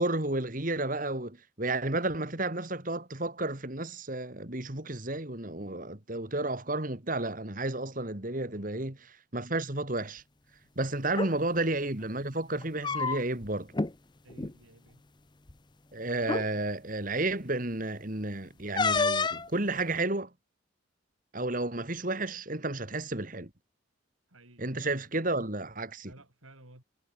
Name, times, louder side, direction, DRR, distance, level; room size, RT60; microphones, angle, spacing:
voice 1, 0.0-10.2 10.8-13.7 15.9-20.3 21.3-23.5 24.6-26.1, right 2 dB, 40° right, 2.3 m, -32 dB
voice 2, 8.5-8.9 10.6-11.8 14.2-15.0 24.3-25.1 26.1-26.8, right 1 dB, 90° right, 6.8 m, -56 dB
sound 1, 11.0-11.3 12.6-13.5 13.7-13.9 14.3-14.5 15.5-15.6 16.2-16.5 18.8-19.5, left 4 dB, 20° left, 0.7 m, -28 dB
head